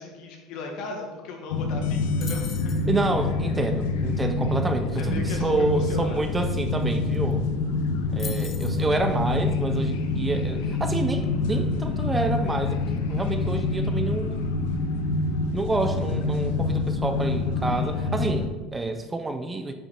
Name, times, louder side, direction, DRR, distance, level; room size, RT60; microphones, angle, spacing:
voice 1, 0.0-2.7 5.0-6.2, left 3 dB, 60° left, 1 dB, 1.7 m, -37 dB
sound 1, 1.5-18.5, left 3 dB, 85° left, 0.8 m, -26 dB
sound 2, 2.2-2.9 6.8-6.9 7.1-7.5 8.2-8.8, left 5 dB, 25° left, 0.7 m, -39 dB
voice 2, 2.9-7.5 8.1-12.8 13.1-14.4 15.5-19.7, right 2 dB, 15° right, 7 dB, 0.5 m, -28 dB
8.2 x 5.2 x 4.4 m, 1.3 s
supercardioid pair, 130°, 0 cm